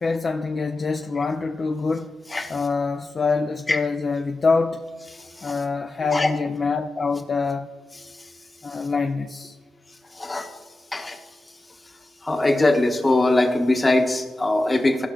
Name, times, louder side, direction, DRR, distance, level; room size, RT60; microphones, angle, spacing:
voice 1, 0.0-2.1 2.5-4.8 5.4-7.7 8.6-9.6, left 4 dB, 40° left, 5 dB, 0.5 m, -25 dB
voice 2, 5.1-5.6 6.1-6.3 8.1-8.3 10.1-10.6 10.9-11.2 12.2-15.1, left 2 dB, 20° left, 6 dB, 1.1 m, -22 dB
16.0 x 5.6 x 3.8 m, 1.4 s
cardioid pair, 90°, 0 cm